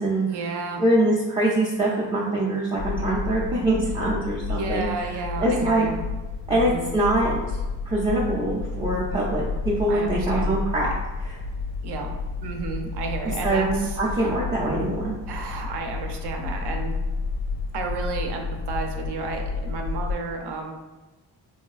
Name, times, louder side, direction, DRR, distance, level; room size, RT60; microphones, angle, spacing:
voice 1, 0.3-0.8 4.5-6.0 6.5-6.9 9.9-10.6 11.8-12.1 12.4-14.3 15.3-16.9 17.7-20.7, right 4 dB, 75° right, 3 dB, 0.6 m, -32 dB
voice 2, 0.8-5.9 6.5-7.6 7.9-10.9 11.2-11.4 13.4-15.2, right 1 dB, 15° right, -6 dB, 0.3 m, -24 dB
sound 1, 2.8-20.2, left 4 dB, 80° left, 0.5 m, -31 dB
3.1 x 2.7 x 2.3 m, 1.2 s
cardioid pair, 115°, 41 cm